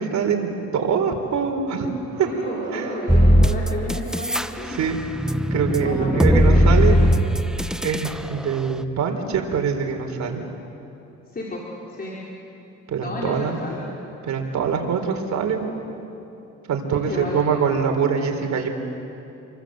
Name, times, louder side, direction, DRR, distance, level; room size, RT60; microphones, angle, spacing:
voice 1, 0.0-1.9 2.2-2.3 2.7-2.9 4.7-5.0 5.5-6.9 7.8-10.4 12.9-13.6 14.2-15.7 16.7-18.7, right 6 dB, 65° right, 4 dB, 3.9 m, -24 dB
sound 1, 2.0-6.9, right 7 dB, 85° right, 3.4 m, -39 dB
voice 2, 2.2-4.8 5.8-7.2 11.3-11.6 11.9-12.1 13.0-13.8 16.9-17.4, left 2 dB, 30° left, -4 dB, 4.8 m, -32 dB
sound 2, 3.1-4.5 4.8-8.1, equal, ahead, 1.0 m, -18 dB
28.0 x 24.5 x 7.8 m, 2.9 s
cardioid pair, 90°, 30 cm